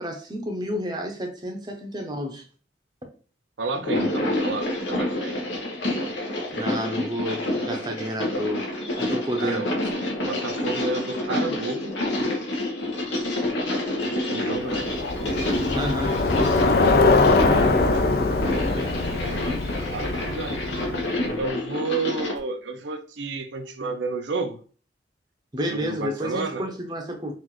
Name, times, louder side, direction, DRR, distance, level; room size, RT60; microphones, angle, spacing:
voice 1, 0.0-2.5 6.5-8.7 8.9-9.7 15.7-16.2 25.5-27.3, equal, 25° right, 0.6 m, -30 dB
voice 2, 3.6-5.4 9.4-9.7 10.2-11.9 14.0-14.9 17.5-20.7 21.4-24.6 25.7-26.7, right 3 dB, 80° right, 0.6 m, -31 dB
sound 1, 3.7-22.4, left 1 dB, 85° left, 0.9 m, -28 dB
Bicycle, 14.7-21.2, left 3 dB, 55° left, 0.4 m, -22 dB
3.9 x 2.5 x 3.0 m
head